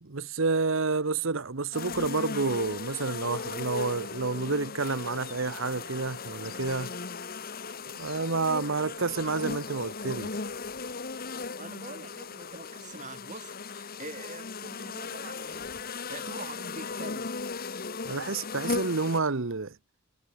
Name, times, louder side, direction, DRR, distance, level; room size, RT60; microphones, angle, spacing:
voice 1, 0.0-6.9 7.9-10.3 18.0-19.7, right 4 dB, 65° right, 1.0 m, -29 dB
sound 1, 1.7-19.2, left 4 dB, 45° left, 1.4 m, -37 dB
voice 2, 11.6-17.3, right 3 dB, 35° right, 5.7 m, -45 dB
head